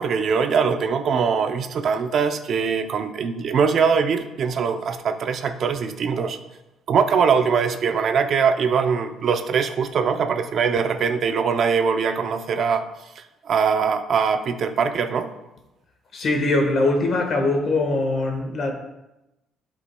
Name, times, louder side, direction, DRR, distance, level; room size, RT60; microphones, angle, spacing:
voice 1, 0.0-6.4 6.9-12.8 13.2-15.3, right 6 dB, 50° right, 0.5 m, -22 dB
voice 2, 16.1-18.7, left 2 dB, 45° left, 1.3 m, -22 dB
11.0 x 5.0 x 2.2 m
cardioid pair, 120°, 0 cm